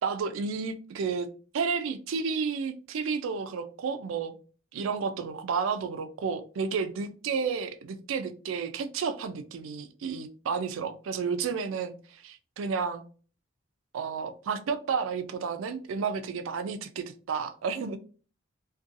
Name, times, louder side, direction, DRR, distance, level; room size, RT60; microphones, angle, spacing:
voice 1, 0.0-1.3 1.5-4.3 4.7-13.0 13.9-18.0, right 5 dB, 80° right, 10 dB, 0.3 m, -31 dB
2.5 x 2.2 x 2.6 m, 0.38 s
head